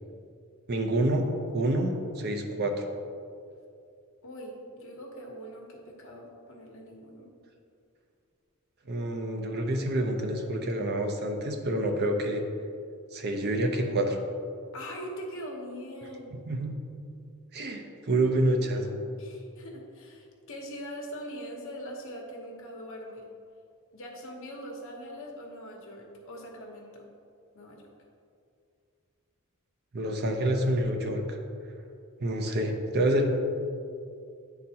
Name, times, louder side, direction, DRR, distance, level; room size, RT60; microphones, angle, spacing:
voice 1, 0.7-1.3 1.5-2.8 8.9-12.4 13.1-14.2 16.4-16.7 17.5-19.0 29.9-31.4 32.2-33.3, right 1 dB, 50° right, 3 dB, 0.6 m, -27 dB
voice 2, 4.2-7.3 14.7-16.4 19.2-23.2 23.9-27.1 27.5-27.8, equal, 65° left, 0 dB, 1.0 m, -42 dB
9.7 x 3.9 x 2.8 m, 2.4 s
head